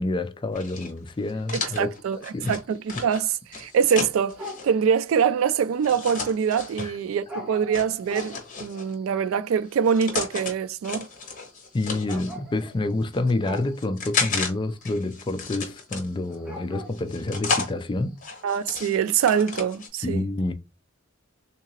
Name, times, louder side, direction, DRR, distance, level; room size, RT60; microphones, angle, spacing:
voice 1, 0.0-2.6 3.0-3.1 6.8-6.9 11.7-18.2 20.0-20.5, left 2 dB, 25° left, 0.4 m, -28 dB
sound 1, 0.5-4.7 5.8-6.9 7.7-8.9 9.7-10.5 10.8-12.4 13.0-14.5 14.8-16.3 16.9-17.7 18.2-19.9, left 4 dB, 40° left, 1.1 m, -32 dB
sound 2, 1.4-18.3, left 1 dB, 5° right, 1.2 m, -45 dB
voice 2, 1.5-2.2 2.5-11.1 18.4-20.3, right 7 dB, 75° right, 0.3 m, -24 dB
3.6 x 2.8 x 2.8 m
head